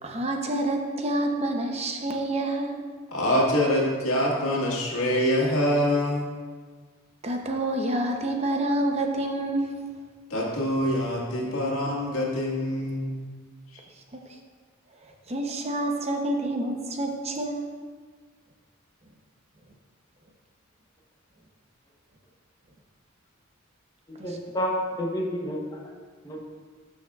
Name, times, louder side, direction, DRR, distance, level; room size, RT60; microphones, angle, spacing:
voice 1, 0.0-2.8 7.2-9.8 14.1-14.2 15.0-17.7 24.2-24.4, right 1 dB, 30° right, 2 dB, 0.7 m, -28 dB
voice 2, 3.1-6.3 10.3-13.2, left 1 dB, 85° left, -3 dB, 1.8 m, -25 dB
voice 3, 24.1-25.9 26.2-26.4, equal, 20° left, -1 dB, 0.9 m, -30 dB
12.0 x 6.3 x 2.4 m, 1.5 s
head